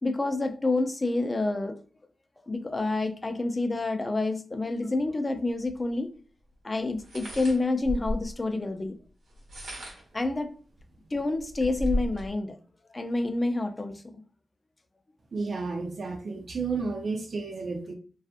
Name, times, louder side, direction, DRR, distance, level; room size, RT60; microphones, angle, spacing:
voice 1, 0.0-1.8 2.5-6.1 6.6-9.0 10.1-10.5 11.1-12.6 12.9-13.9, left 2 dB, 35° left, 0.4 m, -28 dB
sound 1, 5.7-5.8 7.0-8.4 9.3-10.2 10.8-10.9 11.2-12.3, equal, 80° right, 0.9 m, -34 dB
voice 2, 15.3-17.9, right 4 dB, 65° right, 0.5 m, -32 dB
2.5 x 2.4 x 2.4 m
cardioid pair, 45°, 0 cm